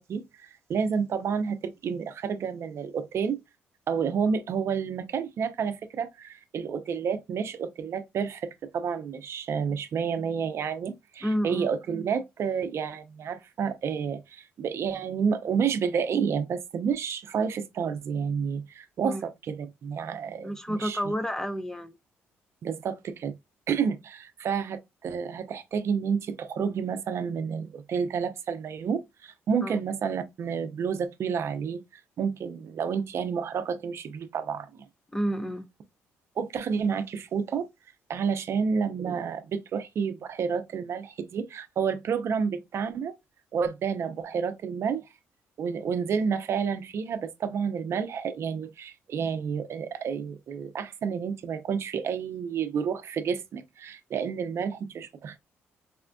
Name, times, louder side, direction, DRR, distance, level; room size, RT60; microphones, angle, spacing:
voice 1, 0.0-3.4 3.9-21.1 22.6-23.3 23.7-31.8 32.2-34.9 36.4-37.7 38.1-43.1 43.5-45.1 45.6-55.4, right 6 dB, 55° right, 0.5 m, -30 dB
voice 2, 11.2-11.7 19.0-19.2 20.4-22.0 29.6-29.8 35.1-35.7, equal, 10° left, 0.5 m, -30 dB
4.2 x 2.4 x 2.2 m
cardioid pair, 85°, 5 cm